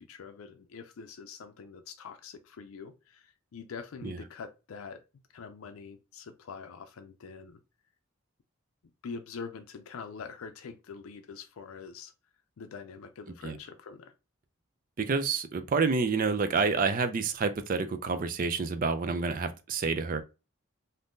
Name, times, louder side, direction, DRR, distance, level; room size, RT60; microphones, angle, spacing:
voice 1, 0.0-5.0 5.3-7.6 9.0-12.1 12.6-14.1, left 5 dB, 85° left, 0.4 m, -44 dB
voice 2, 15.0-20.2, right 4 dB, 40° right, 0.4 m, -28 dB
2.6 x 2.5 x 3.5 m
head